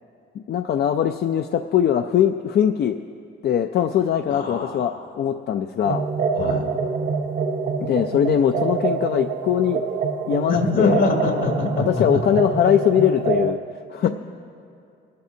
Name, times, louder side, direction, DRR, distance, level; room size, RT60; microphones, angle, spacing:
voice 1, 0.5-3.0 3.4-6.1 7.8-9.8 10.3-11.0 11.8-13.6 13.9-14.1, left 9 dB, 55° left, 7 dB, 0.4 m, -21 dB
voice 2, 4.3-5.1 6.3-6.6 10.5-12.2 14.0-14.1, left 3 dB, 75° left, 1 dB, 2.5 m, -24 dB
sound 1, 5.8-13.5, right 5 dB, 45° right, 0.7 m, -26 dB
24.5 x 12.0 x 2.7 m, 2.5 s
cardioid pair, 90°, 20 cm